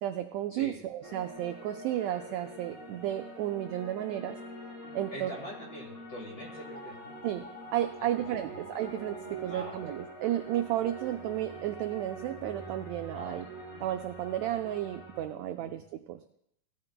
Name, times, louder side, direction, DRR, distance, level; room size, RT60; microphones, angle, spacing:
voice 1, 0.0-4.4 4.9-5.3 7.2-13.5 13.8-16.2, right 12 dB, 85° right, 7 dB, 1.6 m, -33 dB
sound 1, 1.0-15.2, right 1 dB, 20° left, 2.3 m, -45 dB
voice 2, 5.1-7.1 8.0-8.7 9.4-9.8 13.1-13.5 15.6-15.8, equal, 35° left, -1 dB, 1.7 m, -44 dB
17.5 x 12.5 x 2.2 m, 0.72 s
omnidirectional pair, 3.6 m